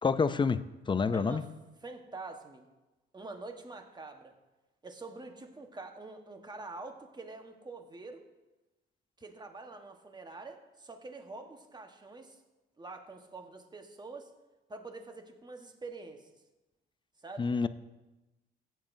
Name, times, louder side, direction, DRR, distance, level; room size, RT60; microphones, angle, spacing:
voice 1, 0.0-1.4 17.4-17.7, left 5 dB, 25° left, 14 dB, 0.4 m, -28 dB
voice 2, 1.1-1.5 1.8-2.7 3.1-4.4 4.8-8.2 9.2-12.4 12.8-14.3 14.7-16.3 17.2-17.5, right 3 dB, 20° right, 5 dB, 1.2 m, -46 dB
14.5 x 9.0 x 2.7 m, 1.0 s
cardioid pair, 90°, 20 cm